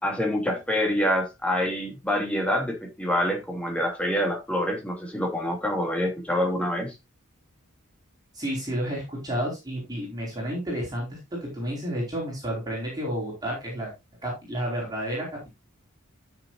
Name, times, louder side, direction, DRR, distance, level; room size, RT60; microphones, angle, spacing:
voice 1, 0.0-6.9, equal, 5° left, 2.8 m, -26 dB
voice 2, 8.3-13.9 14.2-15.5, equal, 20° right, 4.6 m, -31 dB
13.0 x 6.8 x 2.6 m
head